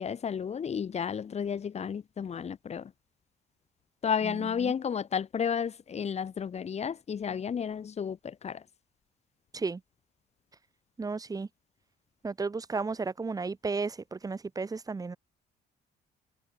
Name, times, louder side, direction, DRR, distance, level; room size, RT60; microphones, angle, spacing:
voice 1, 0.0-2.9 4.0-8.6, left 7 dB, 40° left, 3.3 m, -32 dB
voice 2, 4.2-4.7 9.5-9.8 11.0-11.5 12.2-15.2, right 4 dB, 20° right, 1.9 m, -34 dB
cardioid pair, 110°, 17 cm